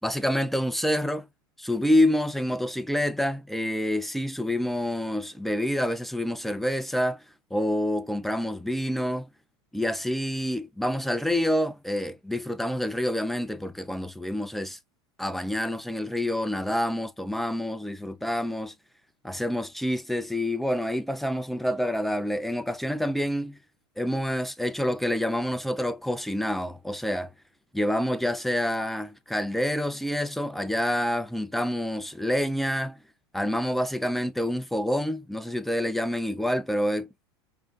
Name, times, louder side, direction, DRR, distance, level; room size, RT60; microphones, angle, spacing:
voice 1, 0.0-1.3 1.6-7.2 7.5-9.3 9.7-14.8 15.2-18.7 19.2-23.6 24.0-27.3 27.7-33.0 33.3-37.1, left 1 dB, ahead, 0.3 m, -27 dB
4.8 x 2.0 x 2.3 m
hypercardioid pair, 95°, 14 cm